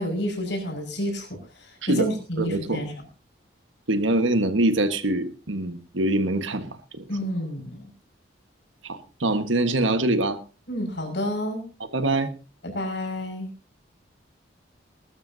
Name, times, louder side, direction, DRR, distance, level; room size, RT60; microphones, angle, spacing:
voice 1, 0.0-2.9 7.1-7.9 10.7-11.6 12.6-13.5, equal, 65° left, 3 dB, 5.8 m, -30 dB
voice 2, 2.4-2.8 3.9-7.0 8.8-10.4 11.8-12.3, right 2 dB, 85° right, 9 dB, 1.5 m, -24 dB
20.0 x 12.5 x 2.8 m, 0.34 s
head